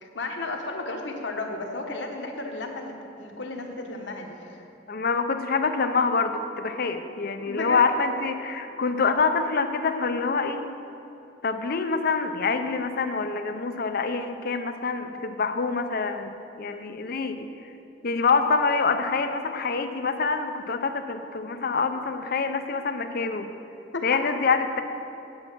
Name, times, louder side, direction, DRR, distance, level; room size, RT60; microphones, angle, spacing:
voice 1, 0.0-4.7 7.5-7.9 23.9-24.1, left 2 dB, 70° left, 2 dB, 1.2 m, -33 dB
voice 2, 4.9-10.6 11.4-17.5 18.0-23.5 24.0-24.8, left 4 dB, 55° left, 8 dB, 0.6 m, -26 dB
8.6 x 8.6 x 6.1 m, 2.8 s
head